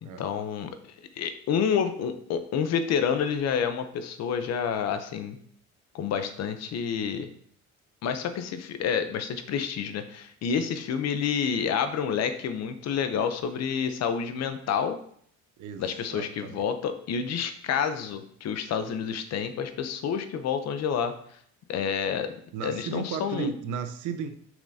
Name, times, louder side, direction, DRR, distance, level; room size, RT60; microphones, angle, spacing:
voice 1, 0.0-0.7 1.2-5.4 5.9-7.3 8.0-15.0 15.8-21.1 21.7-22.3 22.6-23.5, left 7 dB, 55° left, 9 dB, 0.8 m, -29 dB
voice 2, 15.6-16.7 22.5-24.4, right 6 dB, 75° right, 7 dB, 0.8 m, -35 dB
7.1 x 5.9 x 2.8 m, 0.62 s
cardioid pair, 125°, 31 cm